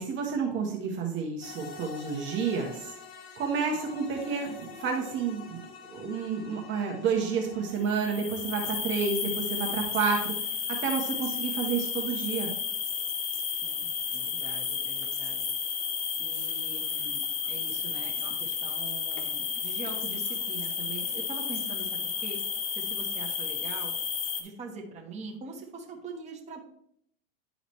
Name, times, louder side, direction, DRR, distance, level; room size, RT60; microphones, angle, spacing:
voice 1, 0.0-2.9 3.4-5.6 5.9-12.5, right 5 dB, 40° right, 0 dB, 1.3 m, -30 dB
sound 1, 1.4-7.8, left 5 dB, 50° left, 1.4 m, -46 dB
sound 2, 7.8-24.4, left 6 dB, 90° left, 1.3 m, -32 dB
voice 2, 13.6-15.5 16.2-22.4 22.7-23.9 24.4-26.6, right 4 dB, 25° right, 0 dB, 1.4 m, -43 dB
11.0 x 3.9 x 3.2 m, 0.69 s
supercardioid pair, 115°, 29 cm